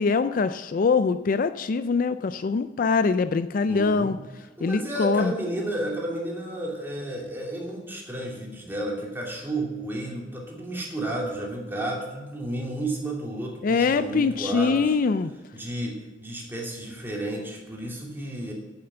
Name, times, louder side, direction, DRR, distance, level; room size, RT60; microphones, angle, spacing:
voice 1, 0.0-4.2 4.6-5.3 13.6-15.3, left 4 dB, 50° left, 12 dB, 0.4 m, -23 dB
voice 2, 3.6-4.1 4.6-15.0 15.5-18.5, right 1 dB, 10° right, -2 dB, 2.7 m, -32 dB
8.9 x 8.8 x 6.9 m, 1.2 s
head